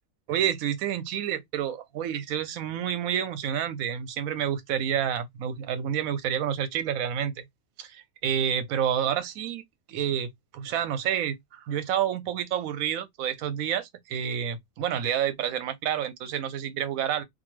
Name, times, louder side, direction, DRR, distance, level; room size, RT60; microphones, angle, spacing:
voice 1, 0.3-7.3 7.8-9.6 9.9-17.2, right 9 dB, 80° right, 1.0 m, -29 dB
2.6 x 2.5 x 3.0 m
omnidirectional pair, 1.4 m